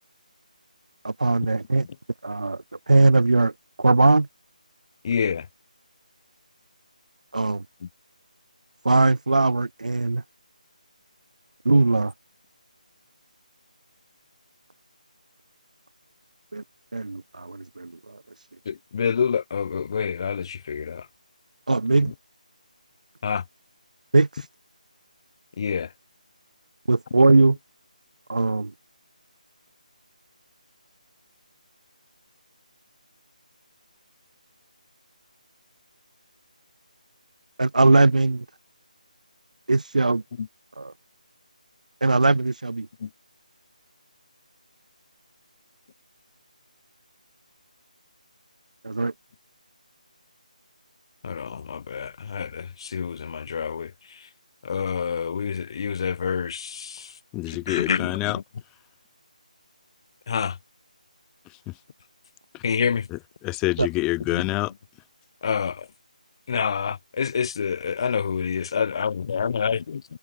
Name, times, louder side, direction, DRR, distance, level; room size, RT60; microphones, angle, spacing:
voice 1, 1.0-1.9 2.2-3.5 3.8-4.3 7.3-7.6 8.8-10.2 11.7-12.1 16.5-16.6 16.9-18.5 21.7-22.1 24.1-24.5 26.9-27.6 28.3-28.7 37.6-38.5 39.7-40.2 40.8-40.9 42.0-42.9 48.8-49.1 63.8-63.9, right 3 dB, 65° right, 5.3 m, -20 dB
voice 2, 5.0-5.5 7.8-7.9 18.6-21.1 23.2-23.4 25.6-25.9 40.4-40.5 43.0-43.1 51.2-54.3 54.6-57.2 57.5-58.4 60.3-60.6 62.6-63.1 64.3-64.5 65.4-65.9 66.5-70.2, left 6 dB, 40° left, 7.9 m, -27 dB
voice 3, 57.3-58.4 61.7-61.8 62.5-62.6 63.1-64.7, left 22 dB, 10° left, 5.6 m, -27 dB
figure-of-eight pair, 155°, 4 cm